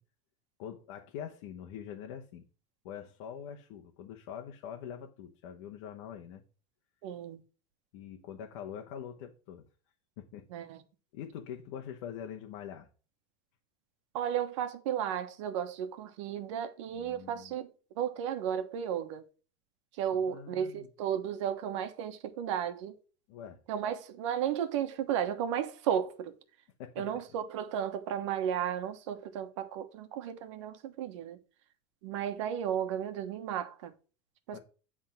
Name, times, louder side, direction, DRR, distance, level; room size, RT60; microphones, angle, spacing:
voice 1, 0.6-2.5 2.8-6.4 7.9-9.7 10.2-10.7 11.1-12.9 16.9-17.5 20.3-20.9 23.3-23.6 26.8-27.2 34.5-34.6, left 9 dB, 65° left, 1.1 m, -44 dB
voice 2, 7.0-7.4 10.5-10.8 14.1-17.7 18.0-19.2 20.0-23.0 23.7-26.3 27.0-31.4 32.0-33.9 34.5-34.6, right 9 dB, 80° right, 1.2 m, -34 dB
9.9 x 3.7 x 5.7 m
supercardioid pair, 155°, 15 cm